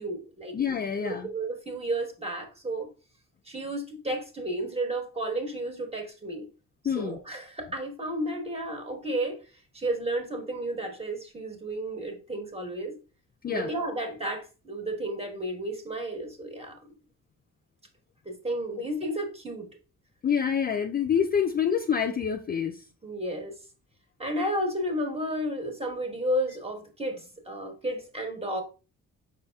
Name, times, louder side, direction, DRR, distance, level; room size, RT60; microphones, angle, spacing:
voice 1, 0.0-0.5 1.0-2.9 3.4-6.5 6.8-9.4 9.7-12.9 13.5-16.8 18.2-19.7 23.0-23.5 24.2-28.6, right 1 dB, 20° right, 1.3 m, -32 dB
voice 2, 0.5-1.3 6.9-7.2 13.4-13.7 20.2-22.7, left 7 dB, 30° left, 0.4 m, -26 dB
5.4 x 4.1 x 2.3 m
cardioid pair, 90°, 30 cm